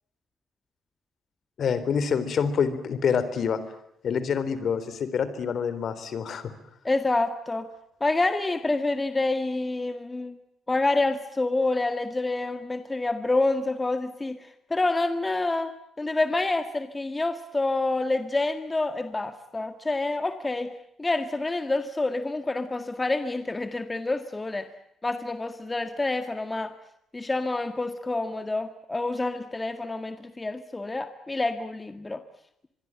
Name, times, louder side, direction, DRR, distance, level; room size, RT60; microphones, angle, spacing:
voice 1, 1.6-3.6 4.0-6.5, left 6 dB, 60° left, 13 dB, 3.8 m, -26 dB
voice 2, 6.8-7.7 8.0-10.4 10.7-20.7 21.0-24.7 25.0-26.7 27.1-32.2, left 2 dB, 20° left, 9 dB, 1.8 m, -27 dB
25.5 x 22.5 x 8.9 m, 0.75 s
cardioid pair, 90°, 0 cm